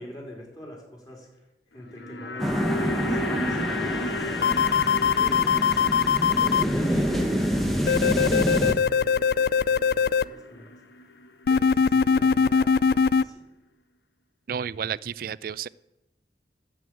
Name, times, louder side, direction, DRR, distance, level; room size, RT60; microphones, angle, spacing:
voice 1, 0.0-1.4 1.7-5.9 6.7-10.7 11.5-13.4, left 1 dB, 20° left, -1 dB, 3.2 m, -43 dB
sound 1, 1.7-12.0 12.3-12.4, left 2 dB, 80° left, 1.0 m, -35 dB
sound 2, 2.4-8.7, equal, ahead, 1.1 m, -27 dB
sound 3, 4.4-6.6 7.9-10.2 11.5-13.2, left 6 dB, 55° left, 0.3 m, -21 dB
voice 2, 14.5-15.7, right 7 dB, 55° right, 20 dB, 0.3 m, -31 dB
11.0 x 7.7 x 8.6 m, 0.94 s
head